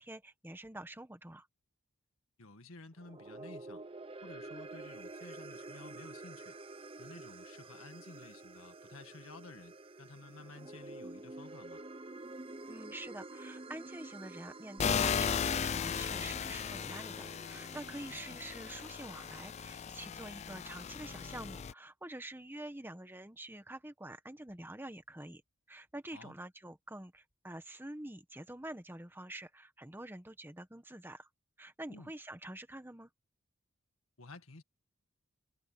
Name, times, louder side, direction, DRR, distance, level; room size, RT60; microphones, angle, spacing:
voice 1, 0.0-1.5 12.7-25.4 25.7-31.3 31.6-33.1, right 1 dB, 10° right, 1.3 m, -47 dB
voice 2, 2.4-3.8 4.2-6.6 7.0-11.8 18.1-18.4 26.1-26.3 31.9-32.1 34.2-34.6, left 2 dB, 75° left, 1.9 m, -53 dB
sound 1, 2.9-19.4, right 2 dB, 25° right, 0.8 m, -49 dB
sound 2, 14.8-21.7, left 7 dB, 30° left, 0.3 m, -36 dB
head